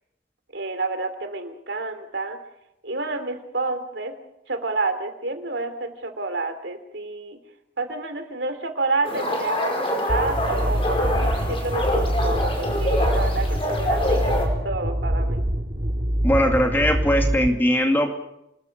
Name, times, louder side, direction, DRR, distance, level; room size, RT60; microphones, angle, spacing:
voice 1, 0.5-2.4 2.8-4.2 4.5-7.4 7.8-14.3 14.6-15.4, right 3 dB, 75° right, 8 dB, 2.9 m, -29 dB
sound 1, 9.0-14.5, left 1 dB, 30° left, 5.1 m, -26 dB
sound 2, 10.1-17.5, equal, 40° right, 1.9 m, -25 dB
voice 2, 16.2-18.1, equal, 10° left, 3 dB, 2.4 m, -20 dB
28.5 x 20.5 x 5.3 m, 0.84 s
head